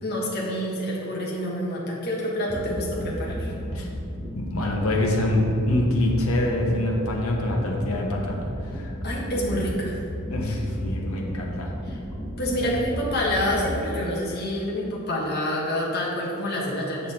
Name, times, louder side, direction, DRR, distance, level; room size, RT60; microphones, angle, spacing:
voice 1, 0.0-3.5 9.0-10.0 11.9-12.0 12.4-17.1, left 1 dB, 45° left, -4 dB, 1.5 m, -27 dB
sound 1, 2.5-13.7, equal, 15° left, 0.9 m, -33 dB
voice 2, 4.3-8.9 10.3-11.7 12.6-12.7, left 1 dB, 70° left, -1 dB, 1.1 m, -25 dB
8.2 x 5.8 x 4.4 m, 2.8 s
head